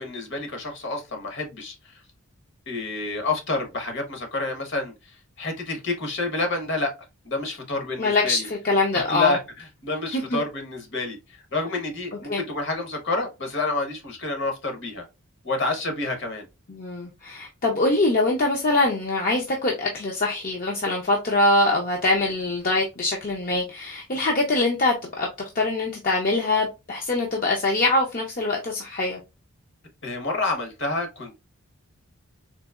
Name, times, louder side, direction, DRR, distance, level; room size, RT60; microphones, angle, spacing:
voice 1, 0.0-2.0 2.7-6.9 7.2-8.5 8.9-15.0 15.4-16.5 30.0-31.4, left 3 dB, 55° left, 1.0 m, -29 dB
voice 2, 8.0-9.4 10.1-10.4 12.3-12.4 16.7-25.3 25.5-29.2, left 2 dB, 40° left, 0.5 m, -23 dB
3.9 x 2.7 x 2.3 m
head